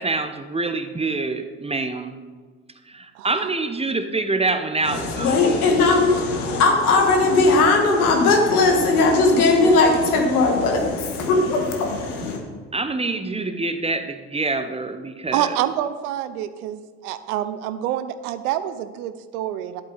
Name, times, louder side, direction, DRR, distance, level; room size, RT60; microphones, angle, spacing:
voice 1, 0.0-2.2 2.9-5.7 12.7-15.6, right 3 dB, 15° right, 9 dB, 0.8 m, -26 dB
voice 2, 3.1-3.5 9.6-9.7 15.3-19.8, right 12 dB, 80° right, 12 dB, 0.7 m, -27 dB
voice 3, 4.8-12.4, left 3 dB, 85° left, 2 dB, 1.6 m, -18 dB
11.5 x 8.1 x 3.9 m, 1.5 s
hypercardioid pair, 60°, 43 cm